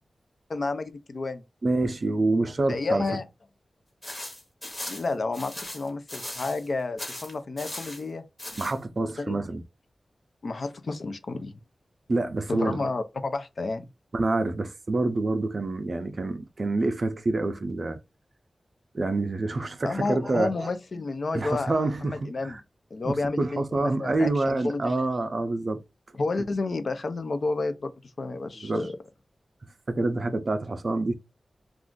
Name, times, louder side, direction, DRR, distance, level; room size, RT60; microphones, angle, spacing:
voice 1, 0.5-1.4 2.7-3.2 4.9-8.2 9.0-9.4 10.4-11.5 12.5-13.8 19.8-21.7 22.0-22.6 22.9-25.0 26.2-27.9 28.2-28.9, left 3 dB, 55° left, 0.4 m, -30 dB
voice 2, 1.6-3.1 8.6-9.6 12.1-12.8 14.1-18.0 18.9-20.7 21.3-22.6 23.0-25.8 28.6-28.9 29.9-31.1, right 2 dB, 45° right, 0.4 m, -27 dB
sound 1, 4.0-6.7 7.0-8.0 8.4-8.8, left 1 dB, 25° left, 1.0 m, -38 dB
2.4 x 2.4 x 3.5 m
wide cardioid pair, 115°, 0 cm